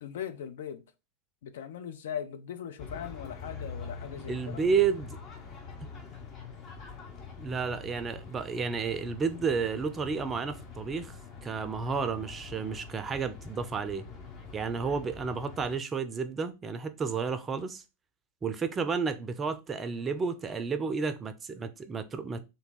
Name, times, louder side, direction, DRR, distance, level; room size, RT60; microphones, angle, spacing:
voice 1, 0.0-0.8 1.4-4.6, left 9 dB, 60° left, 0.5 m, -39 dB
sound 1, 2.8-15.8, left 4 dB, 35° left, 0.9 m, -45 dB
voice 2, 4.3-5.2 7.4-11.1 11.4-14.0 14.5-17.8 18.4-22.4, right 5 dB, 20° right, 0.5 m, -31 dB
3.4 x 2.6 x 3.9 m
figure-of-eight pair, 90°, 0 cm